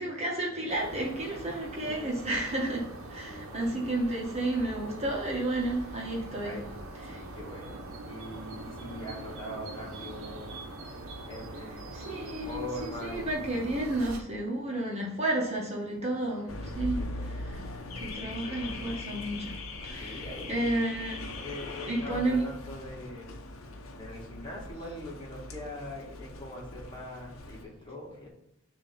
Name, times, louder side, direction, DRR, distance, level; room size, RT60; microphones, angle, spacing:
voice 1, 0.0-6.5 7.1-7.2 11.9-17.7 17.9-19.6 19.8-20.2 20.5-21.2 21.9-22.5, right 1 dB, 30° right, -2 dB, 1.4 m, -32 dB
sound 1, 0.7-14.2, right 2 dB, 90° right, 1.1 m, -43 dB
voice 2, 1.3-2.3 3.3-3.9 6.4-10.5 11.3-13.4 15.9-16.0 16.3-17.3 19.9-20.8 21.3-23.4 23.9-28.3, left 1 dB, 20° left, -3 dB, 1.9 m, -43 dB
Car / Alarm, 16.5-27.6, left 2 dB, 85° left, 0.9 m, -40 dB
6.7 x 3.0 x 5.8 m, 0.83 s
head